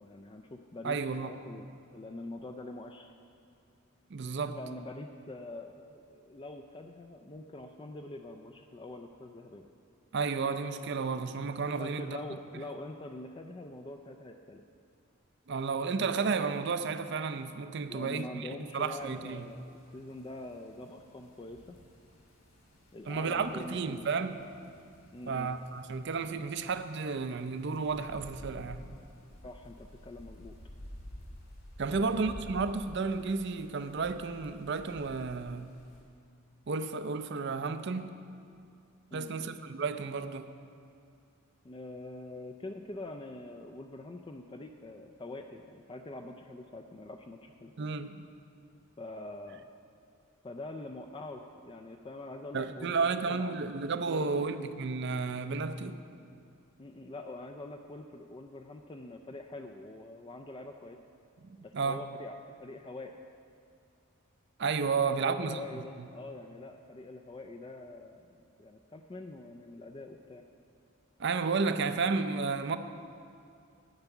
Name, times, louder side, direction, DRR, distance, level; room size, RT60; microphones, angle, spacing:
voice 1, 0.0-3.1 4.5-9.6 11.8-14.6 17.9-21.8 22.9-24.0 25.1-25.6 29.4-30.5 31.9-32.1 39.1-39.5 41.6-47.7 49.0-49.6 50.4-53.5 54.1-54.5 56.8-61.0 61.6-63.2 65.2-70.4, left 2 dB, 20° left, 0.3 m, -44 dB
voice 2, 0.8-1.3 4.1-4.6 10.1-12.2 15.5-19.5 23.1-24.4 25.3-28.8 31.8-35.7 36.7-38.2 39.1-40.5 47.8-48.2 52.5-56.0 61.4-62.0 64.6-66.1 71.2-72.8, right 4 dB, 50° right, 0.4 m, -32 dB
sound 1, 18.9-36.0, equal, 60° left, 2.7 m, -52 dB
10.5 x 5.7 x 8.1 m
head